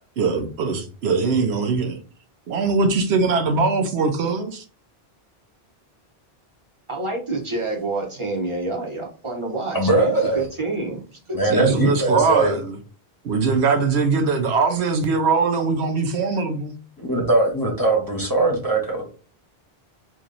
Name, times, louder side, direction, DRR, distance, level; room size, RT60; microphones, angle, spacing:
voice 1, 0.2-2.0 2.5-4.6 11.5-12.8 13.2-16.8, right 4 dB, 85° right, 0.9 m, -21 dB
voice 2, 6.9-11.0 11.3-11.8, right 2 dB, 30° right, 1.0 m, -28 dB
voice 3, 9.7-10.4 11.3-12.5 17.0-19.1, right 2 dB, 20° left, 1.0 m, -21 dB
3.0 x 2.7 x 3.8 m
omnidirectional pair, 1.1 m